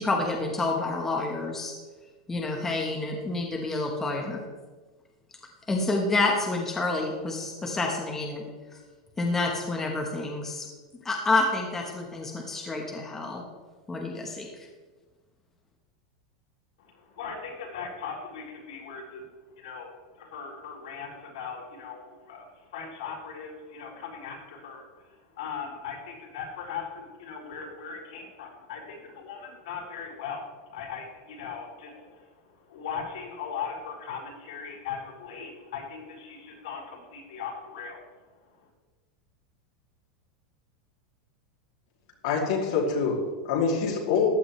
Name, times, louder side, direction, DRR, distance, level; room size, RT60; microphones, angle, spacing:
voice 1, 0.0-1.7 2.3-4.4 5.7-8.5 9.2-10.7 11.0-13.4 13.9-14.5, left 2 dB, 10° left, 0 dB, 1.2 m, -28 dB
voice 2, 16.8-19.3 19.6-19.9 20.1-38.1 38.6-38.7, left 6 dB, 75° left, -3 dB, 4.5 m, -39 dB
voice 3, 42.2-44.3, left 5 dB, 60° left, -1 dB, 2.7 m, -25 dB
14.5 x 11.0 x 3.2 m, 1.3 s
supercardioid pair, 170°, 4 cm